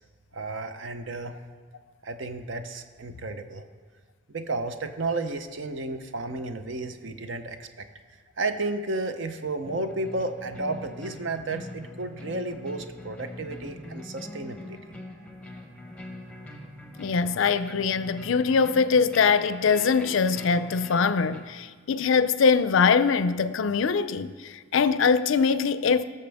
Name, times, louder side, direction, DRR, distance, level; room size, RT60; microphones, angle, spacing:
voice 1, 0.3-1.4 2.0-3.7 4.3-7.9 8.4-14.8, right 2 dB, 60° right, 0.7 m, -32 dB
sound 1, 9.6-21.4, left 1 dB, 5° left, 0.9 m, -42 dB
voice 2, 17.0-26.0, left 5 dB, 65° left, 0.4 m, -22 dB
18.5 x 6.6 x 3.5 m
head